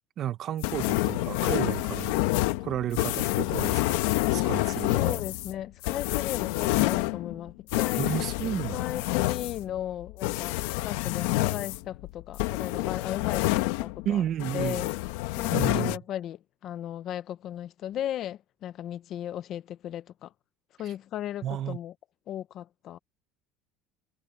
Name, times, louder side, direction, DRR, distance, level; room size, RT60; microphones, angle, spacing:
voice 1, 0.2-2.3 2.6-5.2 8.0-9.0 14.0-14.8 15.5-16.0 20.8-20.9 21.4-21.8, right 11 dB, 35° right, 1.0 m, -32 dB
sound 1, 0.6-14.1 14.4-16.0, left 19 dB, 85° left, 1.0 m, -28 dB
voice 2, 4.9-8.0 8.7-14.2 14.5-14.9 15.4-20.3 20.8-21.9 22.3-23.0, left 11 dB, 35° left, 0.6 m, -36 dB
cardioid pair, 170°, 0 cm